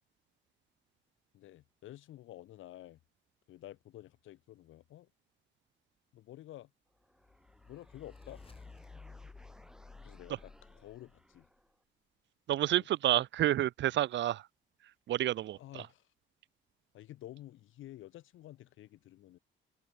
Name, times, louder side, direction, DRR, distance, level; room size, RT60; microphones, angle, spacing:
voice 1, 1.3-3.0 3.5-5.1 6.1-6.7 7.6-8.4 10.0-11.5 12.7-13.2 15.6-16.1 16.9-19.4, left 14 dB, 85° left, 2.7 m, -51 dB
sound 1, 6.9-11.8, equal, 5° right, 2.8 m, -62 dB
sound 2, 7.2-11.5, left 4 dB, 30° left, 2.5 m, -54 dB
voice 2, 12.5-14.4 15.1-15.6, right 13 dB, 65° right, 0.6 m, -29 dB
cardioid pair, 90°, 20 cm